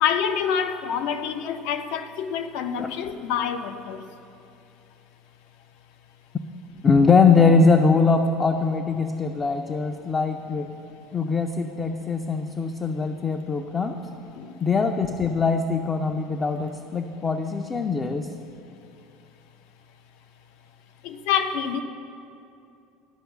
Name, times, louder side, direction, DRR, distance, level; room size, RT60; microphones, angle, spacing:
voice 1, 0.0-4.0 14.4-14.5 21.0-21.8, left 8 dB, 70° left, 9 dB, 0.6 m, -26 dB
voice 2, 6.8-10.7 11.1-14.0 14.6-18.3, left 4 dB, 20° left, 5 dB, 0.4 m, -22 dB
12.0 x 5.4 x 6.9 m, 2.7 s
cardioid pair, 155°, 0 cm